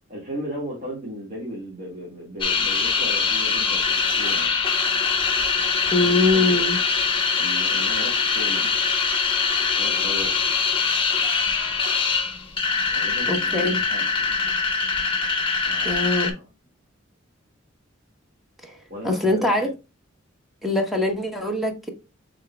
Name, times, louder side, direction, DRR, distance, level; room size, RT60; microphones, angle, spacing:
voice 1, 0.1-4.6 6.0-6.6 7.3-8.6 9.8-10.4 12.9-14.3 15.6-16.5 18.9-19.7, equal, 40° right, 1.8 m, -36 dB
sound 1, 2.4-16.3, left 5 dB, 25° left, 0.9 m, -23 dB
voice 2, 5.9-6.8 13.3-13.8 15.8-16.3 18.6-19.7 20.6-21.9, left 2 dB, ahead, 0.9 m, -23 dB
6.3 x 3.8 x 2.2 m
head